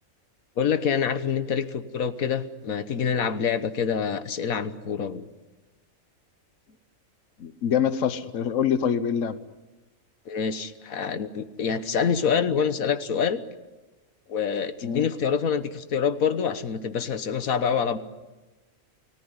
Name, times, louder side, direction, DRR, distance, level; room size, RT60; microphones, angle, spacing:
voice 1, 0.6-5.2 10.3-13.4 14.3-18.0, left 7 dB, 85° left, 11 dB, 1.6 m, -26 dB
voice 2, 7.4-9.3 14.8-15.1, left 8 dB, 65° left, 11 dB, 1.4 m, -25 dB
29.5 x 18.5 x 9.8 m, 1.2 s
omnidirectional pair, 1.4 m